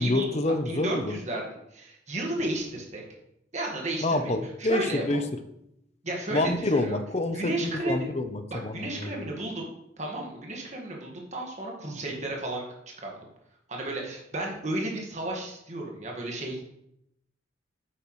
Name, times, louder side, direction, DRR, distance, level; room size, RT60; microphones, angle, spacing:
voice 1, 0.0-1.2 4.0-5.2 6.3-9.2, left 2 dB, 35° left, 8 dB, 0.7 m, -27 dB
voice 2, 0.6-3.0 3.5-5.3 6.0-7.0 7.3-8.1 8.5-9.7 10.0-12.6 13.0-13.2 13.7-16.6, right 1 dB, 35° right, -1 dB, 1.6 m, -33 dB
9.0 x 8.0 x 3.1 m, 0.78 s
head